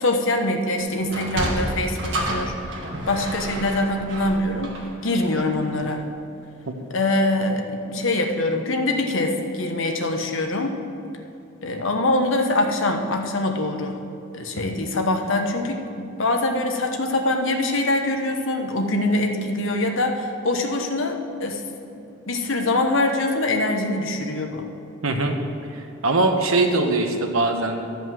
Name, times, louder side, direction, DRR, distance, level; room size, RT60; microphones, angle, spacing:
voice 1, 0.0-2.8 3.1-4.7 5.0-6.0 6.9-10.8 11.6-14.0 14.3-21.6 22.3-24.7, left 2 dB, 65° left, 4 dB, 1.0 m, -24 dB
Sliding door, 1.0-5.6, right 1 dB, 55° right, 1.5 m, -30 dB
voice 2, 25.0-25.4 25.7-27.9, right 2 dB, 80° right, 4 dB, 1.0 m, -22 dB
11.5 x 5.3 x 7.6 m, 2.7 s
head